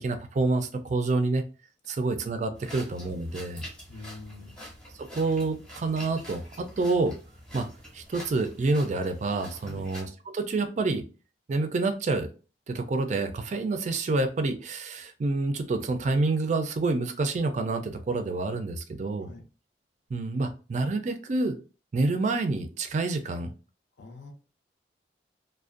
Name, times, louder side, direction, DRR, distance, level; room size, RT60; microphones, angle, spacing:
voice 1, 0.0-1.4 1.9-3.7 5.1-7.1 7.5-7.7 7.9-11.1 11.5-12.3 12.7-19.3 20.1-21.6 21.9-23.5, right 3 dB, 40° right, 7 dB, 0.3 m, -28 dB
sound 1, 2.5-10.0, equal, 5° left, 0.7 m, -46 dB
voice 2, 3.9-4.6 9.6-9.9 19.2-19.4 24.0-24.3, left 3 dB, 80° left, 3 dB, 0.6 m, -45 dB
2.5 x 2.1 x 2.4 m, 0.35 s
head